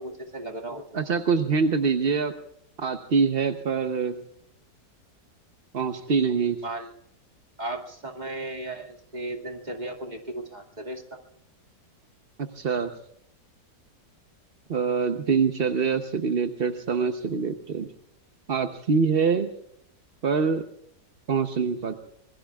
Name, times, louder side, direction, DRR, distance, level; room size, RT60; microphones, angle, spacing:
voice 1, 0.0-0.8 6.6-6.9 7.6-11.0, right 1 dB, 25° right, 2 dB, 2.3 m, -35 dB
voice 2, 0.9-2.3 2.8-4.1 5.7-6.6 12.4-12.9 14.7-17.9 18.5-19.5 20.2-20.6 21.3-22.0, right 5 dB, 45° right, 6 dB, 0.8 m, -24 dB
26.0 x 22.0 x 2.4 m, 0.74 s
omnidirectional pair, 1.9 m